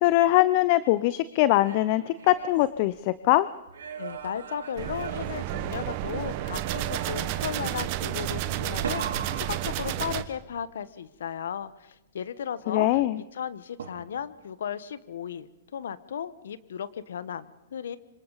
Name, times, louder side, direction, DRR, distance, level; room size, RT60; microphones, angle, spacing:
voice 1, 0.0-3.5 12.7-13.2, left 16 dB, 45° left, 17 dB, 0.6 m, -22 dB
sound 1, 1.3-3.2 3.7-6.1 6.5-7.5 8.8-10.4 13.8-14.4, right 6 dB, 75° right, 3.0 m, -40 dB
voice 2, 4.0-18.0, left 8 dB, 70° left, 16 dB, 1.1 m, -35 dB
sound 2, 4.8-10.2, right 13 dB, 45° right, 1.4 m, -31 dB
26.5 x 25.5 x 4.1 m, 0.98 s
hypercardioid pair, 115°, 0 cm